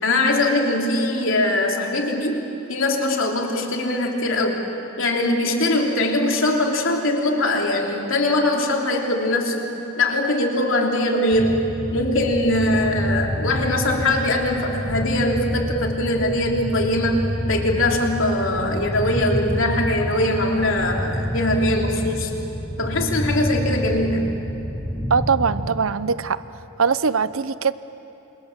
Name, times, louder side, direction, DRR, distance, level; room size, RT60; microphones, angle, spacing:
voice 1, 0.0-4.6 5.0-9.7 10.0-22.3 22.8-24.3, left 1 dB, 65° left, 1 dB, 3.2 m, -22 dB
sound 1, 11.3-25.7, equal, 5° right, 3.5 m, -28 dB
voice 2, 25.1-26.4 26.8-27.7, right 5 dB, 75° right, 15 dB, 0.7 m, -21 dB
28.5 x 26.5 x 7.4 m, 2.9 s
head